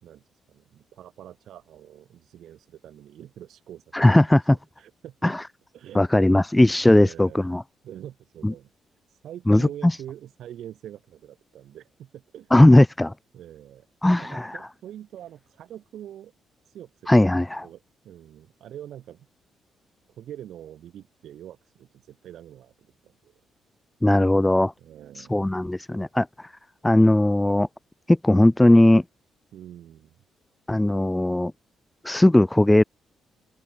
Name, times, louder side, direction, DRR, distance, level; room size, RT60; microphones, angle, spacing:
voice 1, 0.0-4.2 4.8-5.4 5.7-6.2 6.9-7.4 7.8-8.7 9.1-12.5 13.3-16.3 16.7-17.2 17.6-19.3 20.1-22.7 23.0-23.4 24.8-25.4 29.5-30.1, right 11 dB, 75° right, 7.6 m, -44 dB
voice 2, 3.9-4.6 5.2-5.4 5.9-7.6 8.4-8.5 9.5-9.7 12.5-13.1 14.0-14.5 17.1-17.7 24.0-24.7 25.3-26.3 26.8-27.7 28.1-29.0 30.7-31.5 32.0-32.8, left 1 dB, 10° left, 0.5 m, -18 dB
open air
cardioid pair, 90°, 0 cm